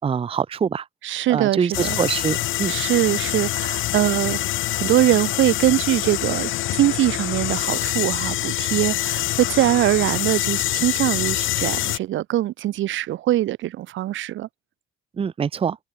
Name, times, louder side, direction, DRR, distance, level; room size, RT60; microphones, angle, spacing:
voice 1, 0.0-0.8 1.3-2.7 15.2-15.8, right 7 dB, 30° right, 0.5 m, -24 dB
voice 2, 1.0-2.0 2.7-4.4 4.7-14.5, right 14 dB, 75° right, 0.8 m, -22 dB
sound 1, 1.7-12.0, left 15 dB, 80° left, 1.1 m, -25 dB
open air
cardioid pair, 90°, 20 cm